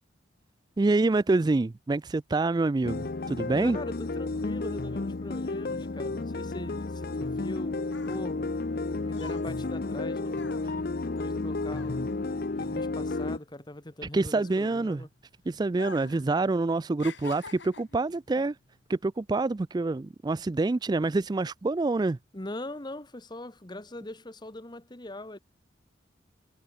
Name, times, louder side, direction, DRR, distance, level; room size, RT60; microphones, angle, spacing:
voice 1, 0.8-3.8 14.1-15.0 15.5-18.6 18.9-22.2, right 3 dB, 20° right, 0.3 m, -26 dB
sound 1, 2.8-13.4, left 3 dB, 50° left, 0.7 m, -32 dB
voice 2, 3.6-8.5 8.9-12.2 12.6-15.1 22.3-25.4, left 1 dB, 20° left, 1.3 m, -41 dB
sound 2, 7.9-12.8 13.0-15.2 15.7-16.3 16.6-18.0 18.7-18.9, left 3 dB, 65° left, 4.0 m, -46 dB
head